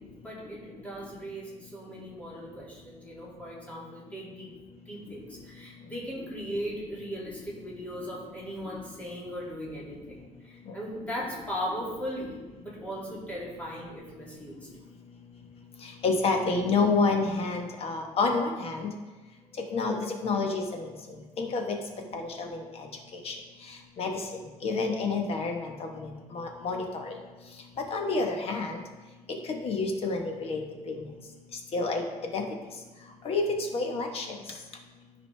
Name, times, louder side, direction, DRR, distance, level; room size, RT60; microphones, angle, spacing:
voice 1, 0.0-4.5 4.9-14.7 19.5-19.6 21.9-22.2, equal, 10° left, -6 dB, 2.4 m, -38 dB
voice 2, 16.0-18.9 19.7-20.0 20.2-20.6 21.4-21.7 22.1-22.6 23.2-23.3 24.0-24.1 24.6-27.1 27.9-28.8 29.5-30.6 30.9-31.0 31.7-32.0 32.3-32.4 33.2-34.3, left 3 dB, 50° left, 3 dB, 1.2 m, -28 dB
13.5 x 5.0 x 3.4 m, 1.2 s
cardioid pair, 160°, 13 cm